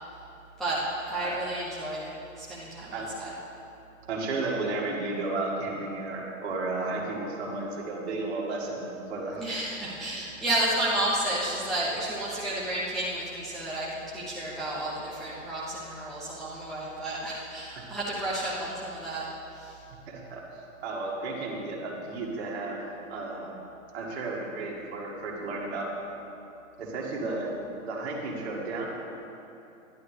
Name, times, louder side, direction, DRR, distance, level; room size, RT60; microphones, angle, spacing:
voice 1, 0.6-2.1 2.4-3.3 9.4-19.3 19.5-19.8, right 1 dB, ahead, -9 dB, 0.6 m, -31 dB
voice 2, 4.1-9.4 17.8-17.9 20.1-22.8 23.1-23.5 23.9-25.9 26.8-27.5 27.9-28.9, right 3 dB, 50° right, -2 dB, 2.1 m, -33 dB
12.0 x 11.0 x 3.3 m, 2.8 s
hypercardioid pair, 135°, 41 cm